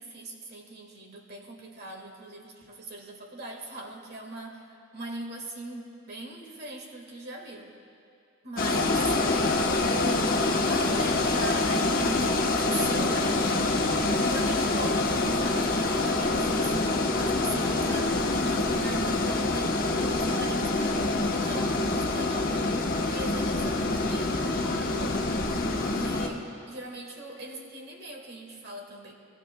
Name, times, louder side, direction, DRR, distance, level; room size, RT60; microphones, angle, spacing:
voice 1, 0.0-7.7 8.4-9.1 9.9-10.4 10.7-29.1, right 2 dB, 50° right, 1 dB, 1.7 m, -40 dB
sound 1, 8.6-26.3, left 2 dB, 45° left, 1.1 m, -26 dB
25.5 x 15.5 x 2.2 m, 2.4 s
head